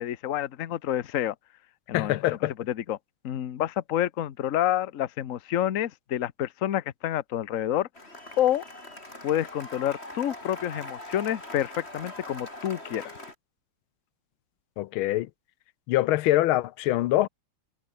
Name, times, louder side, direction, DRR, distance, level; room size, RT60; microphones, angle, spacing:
voice 1, 0.0-1.3 1.9-3.0 3.2-7.9 8.4-8.6 9.2-13.1, left 11 dB, 50° left, 1.1 m, -28 dB
voice 2, 1.9-2.5 14.8-15.3 15.9-17.3, left 15 dB, 80° left, 1.5 m, -24 dB
Cheering / Applause, 8.0-13.4, left 1 dB, 30° left, 7.4 m, -42 dB
omnidirectional pair, 2.3 m